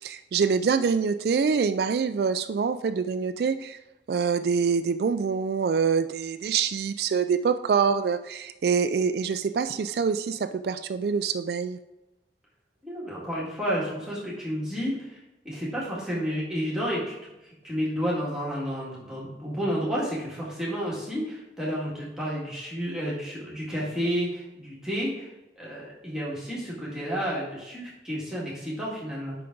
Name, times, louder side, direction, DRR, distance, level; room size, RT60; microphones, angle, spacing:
voice 1, 0.0-3.8 4.1-11.8, right 6 dB, 60° right, 10 dB, 0.3 m, -25 dB
voice 2, 12.8-15.2 15.4-17.1 17.4-29.3, equal, 5° right, -7 dB, 2.0 m, -31 dB
8.6 x 5.8 x 3.8 m, 0.98 s
head